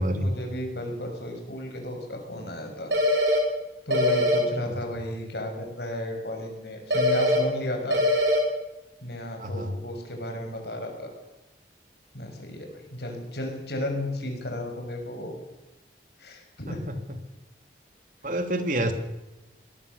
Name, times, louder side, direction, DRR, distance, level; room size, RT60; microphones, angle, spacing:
voice 1, 0.0-2.9 3.9-8.1 9.0-11.1 12.1-15.3 16.2-16.8, left 1 dB, 70° left, 3 dB, 6.0 m, -33 dB
sound 1, 2.9-3.4 3.9-4.4 6.9-7.4 7.9-8.4, left 1 dB, 85° right, 5.2 m, -22 dB
voice 2, 9.4-9.7 18.2-18.9, right 1 dB, 45° right, 7 dB, 2.7 m, -27 dB
22.0 x 19.0 x 6.8 m, 1.0 s
head